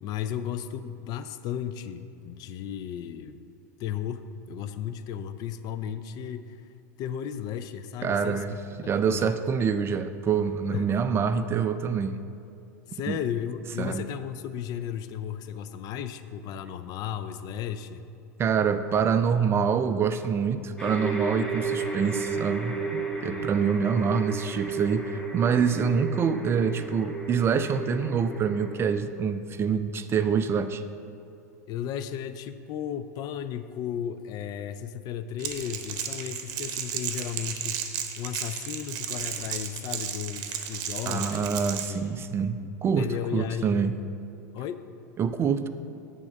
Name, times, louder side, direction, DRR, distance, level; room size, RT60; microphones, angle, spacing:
voice 1, 0.0-3.4 3.8-6.7 7.0-8.4 8.8-9.7 10.7-10.9 12.9-18.0 23.3-23.6 31.7-37.8 38.2-41.6 41.8-42.2 43.0-43.9 44.5-44.8, left 9 dB, 45° left, 11 dB, 0.4 m, -34 dB
voice 2, 8.0-12.2 13.1-13.2 13.8-14.0 18.4-30.8 41.1-43.9 45.2-45.7, right 6 dB, 25° right, 10 dB, 0.4 m, -26 dB
sound 1, 20.8-28.8, right 4 dB, 5° left, 1.3 m, -33 dB
Crackle, 35.4-41.9, right 9 dB, 50° right, 0.8 m, -34 dB
8.4 x 3.7 x 6.6 m, 2.5 s
hypercardioid pair, 90°, 9 cm